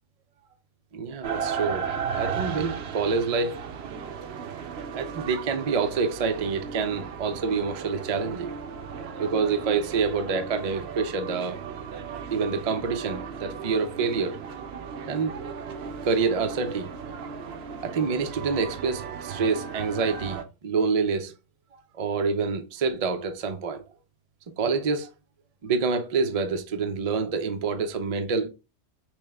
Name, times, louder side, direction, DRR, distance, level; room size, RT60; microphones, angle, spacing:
voice 1, 0.9-3.6 4.9-8.5 9.2-11.6 12.3-14.4 15.1-15.3 16.0-16.9 17.8-21.3 21.9-23.8 24.5-25.1 25.6-28.5, right 5 dB, 50° right, 0.4 m, -27 dB
sound 1, 1.2-20.4, right 6 dB, 65° right, 0.8 m, -36 dB
6.1 x 2.1 x 3.4 m
omnidirectional pair, 1.2 m